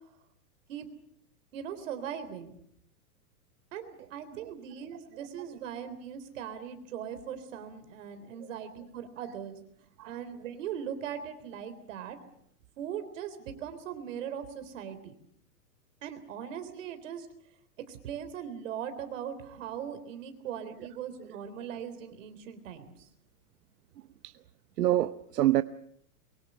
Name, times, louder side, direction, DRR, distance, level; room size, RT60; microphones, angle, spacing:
voice 1, 1.5-2.5 3.7-9.6 10.0-12.2 12.8-15.1 16.0-17.3 17.9-22.9, right 8 dB, 55° right, 9 dB, 3.7 m, -39 dB
voice 2, 24.8-25.6, right 14 dB, 80° right, 12 dB, 1.0 m, -25 dB
24.0 x 23.5 x 6.8 m, 0.70 s
supercardioid pair, 170°, 46 cm